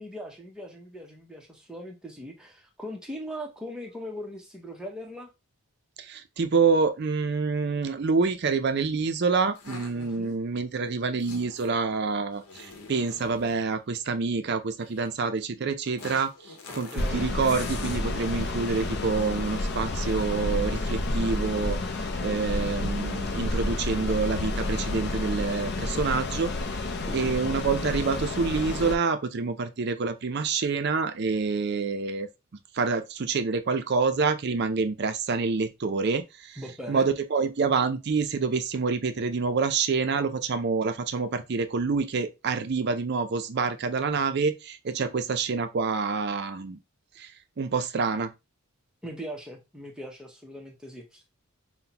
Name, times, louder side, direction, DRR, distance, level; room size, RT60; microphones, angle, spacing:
voice 1, 0.0-5.3 9.9-10.3 16.8-17.2 27.1-27.4 36.6-37.1 49.0-51.4, equal, 5° right, 0.7 m, -40 dB
voice 2, 6.1-16.3 16.7-21.8 22.2-26.5 27.1-32.3 32.7-36.6 36.9-46.8 47.2-47.3 47.6-48.3, right 4 dB, 50° right, 0.4 m, -27 dB
sound 1, 9.5-10.3 11.2-11.8 12.3-13.8 14.8-15.1 16.0-18.1 18.6-19.0, left 4 dB, 85° left, 0.9 m, -44 dB
sound 2, 17.0-29.0, left 2 dB, 50° left, 0.5 m, -30 dB
5.5 x 2.1 x 2.8 m
head